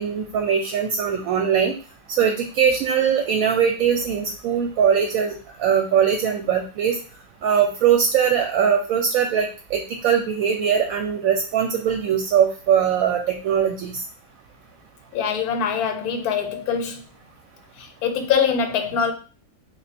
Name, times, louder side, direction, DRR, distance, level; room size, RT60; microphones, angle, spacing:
voice 1, 0.0-1.7 2.2-7.0 7.4-14.0, right 7 dB, 70° right, 0.9 m, -21 dB
voice 2, 15.1-17.0 17.8-19.1, left 6 dB, 80° left, 1.1 m, -23 dB
3.4 x 2.4 x 4.1 m
omnidirectional pair, 1.6 m